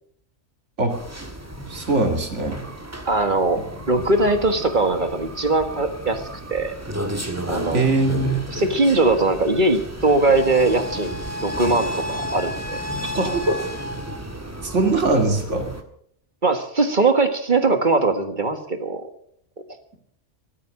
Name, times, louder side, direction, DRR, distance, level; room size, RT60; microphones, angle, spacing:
sound 1, 0.9-15.8, equal, 15° right, 1.5 m, -32 dB
voice 1, 1.7-2.6 3.9-4.0 7.7-8.4 11.6-11.8 13.0-13.6 14.6-15.7, right 2 dB, 75° right, 5 dB, 2.7 m, -21 dB
voice 2, 3.0-3.6 3.9-6.2 6.5-6.7 7.5-7.9 8.5-12.8 16.4-19.1, right 2 dB, 40° right, 7 dB, 1.7 m, -20 dB
15.0 x 12.5 x 6.4 m, 0.67 s
omnidirectional pair, 1.2 m